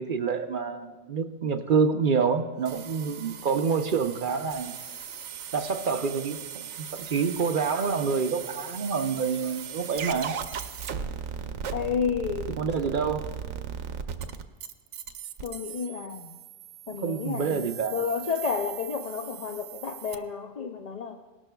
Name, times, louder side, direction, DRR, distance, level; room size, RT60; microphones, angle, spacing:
voice 1, 0.0-4.8 5.5-6.4 6.9-10.3 12.6-13.2 16.9-18.0, right 5 dB, 50° right, 7 dB, 0.7 m, -27 dB
sound 1, 2.7-20.2, right 7 dB, 80° right, 1.0 m, -38 dB
voice 2, 11.7-12.6 15.4-16.4 16.9-17.7 17.9-21.2, left 6 dB, 50° left, 5 dB, 0.5 m, -31 dB
19.5 x 12.0 x 2.3 m, 1.3 s
omnidirectional pair, 1.2 m